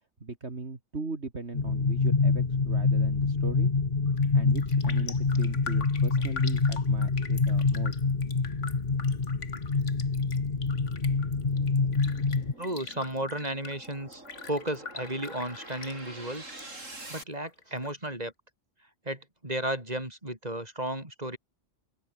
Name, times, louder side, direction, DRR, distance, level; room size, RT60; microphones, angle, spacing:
voice 1, 0.2-3.7 4.3-8.0, right 3 dB, 60° right, 3.2 m, -39 dB
sound 1, 1.5-12.5, left 4 dB, 35° left, 1.6 m, -26 dB
Raindrop, 4.1-4.3 4.6-16.6 16.9-17.9 18.3-18.4, left 5 dB, 70° left, 2.3 m, -44 dB
sound 2, 7.1-17.2, right 2 dB, 85° right, 6.7 m, -50 dB
voice 2, 12.6-16.5 17.1-18.3 19.0-21.4, right 1 dB, 30° right, 6.7 m, -34 dB
open air
omnidirectional pair, 1.3 m